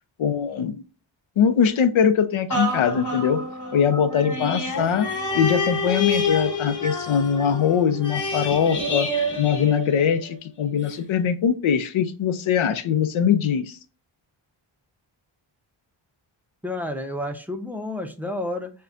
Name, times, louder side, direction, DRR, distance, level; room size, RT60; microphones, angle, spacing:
voice 1, 0.2-0.8 1.4-3.4 3.7-5.1 5.3-9.1 9.4-13.8, left 7 dB, 75° left, 0.6 m, -22 dB
sound 1, 2.5-10.3 10.9-11.0, left 2 dB, 35° left, 1.2 m, -28 dB
voice 2, 16.6-18.7, left 1 dB, 5° right, 0.5 m, -30 dB
5.5 x 2.2 x 2.4 m
cardioid pair, 75°, 49 cm